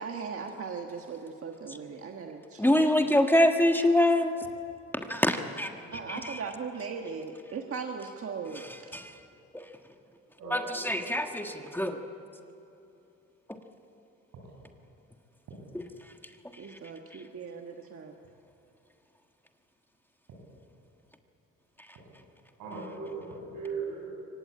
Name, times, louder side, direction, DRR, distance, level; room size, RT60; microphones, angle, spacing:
voice 1, 0.0-3.3 5.9-9.0 16.6-18.1, right 5 dB, 50° right, 3 dB, 1.5 m, -39 dB
voice 2, 2.6-4.3 5.1-5.7 6.1-6.2 8.9-9.2 10.5-12.0 15.7-15.8, left 1 dB, 5° left, 5 dB, 1.4 m, -24 dB
voice 3, 10.4-11.6 14.4-14.5 22.6-24.1, right 4 dB, 85° right, -1 dB, 7.9 m, -39 dB
24.0 x 18.5 x 8.7 m, 2.8 s
cardioid pair, 90°, 30 cm